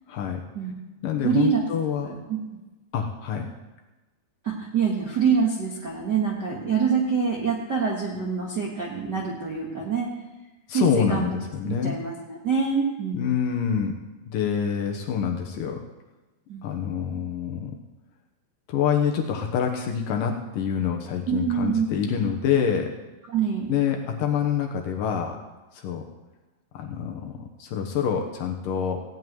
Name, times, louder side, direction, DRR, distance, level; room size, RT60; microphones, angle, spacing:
voice 1, 0.1-0.4 1.0-2.1 2.9-3.5 10.7-12.0 13.1-13.9 14.2-15.8 16.6-17.7 18.7-22.9 23.7-25.4 25.7-26.0 26.7-29.0, left 7 dB, 70° left, 2 dB, 2.4 m, -26 dB
voice 2, 1.2-1.6 2.0-2.4 4.4-10.1 10.7-11.3 11.6-13.3 16.5-16.7 21.3-22.1 23.3-23.7, right 6 dB, 50° right, -4 dB, 1.3 m, -25 dB
16.5 x 5.7 x 9.3 m, 1.1 s
omnidirectional pair, 4.6 m